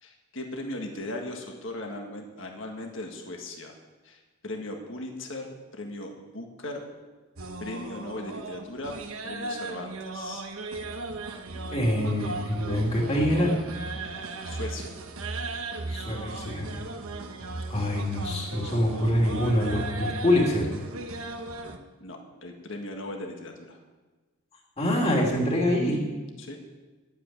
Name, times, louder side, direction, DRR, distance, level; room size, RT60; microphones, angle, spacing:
voice 1, 0.0-3.7 4.0-6.8 7.6-8.9 9.2-10.4 14.4-14.9 22.0-23.8 26.4-26.6, left 1 dB, 60° left, 2 dB, 1.7 m, -38 dB
sound 1, 7.4-21.8, right 2 dB, 80° right, 1.1 m, -36 dB
voice 2, 11.7-13.5 15.9-16.7 17.7-20.7 24.8-26.0, left 1 dB, 30° left, -2 dB, 2.8 m, -25 dB
10.5 x 9.1 x 8.8 m, 1.3 s
head